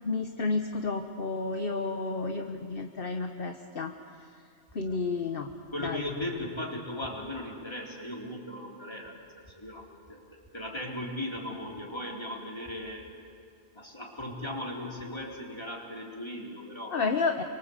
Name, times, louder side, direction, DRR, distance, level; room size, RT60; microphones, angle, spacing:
voice 1, 0.0-3.9 4.7-5.5 5.8-6.0 16.9-17.4, left 4 dB, 55° left, 5 dB, 1.4 m, -31 dB
voice 2, 5.7-9.2 9.5-10.2 10.5-13.0 13.7-17.1, left 1 dB, 20° left, -2 dB, 4.3 m, -37 dB
29.5 x 24.5 x 8.2 m, 2.3 s
omnidirectional pair, 1.2 m